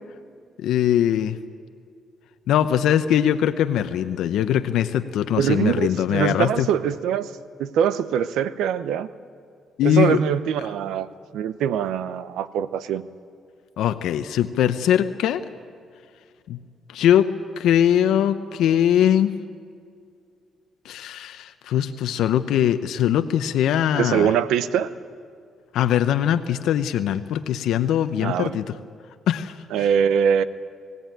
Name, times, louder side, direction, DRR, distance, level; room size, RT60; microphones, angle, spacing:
voice 1, 0.6-1.4 2.5-6.7 9.8-10.2 13.8-15.4 16.5-16.6 16.9-17.3 17.6-19.3 20.8-24.3 25.7-28.7 29.3-29.5, left 10 dB, 80° left, 10 dB, 0.7 m, -21 dB
voice 2, 5.4-7.3 7.6-9.1 9.8-11.1 11.3-13.0 24.0-24.9 28.2-28.6 29.7-30.4, right 8 dB, 85° right, 14 dB, 0.7 m, -23 dB
20.5 x 16.5 x 9.1 m, 2.2 s
cardioid pair, 130°, 0 cm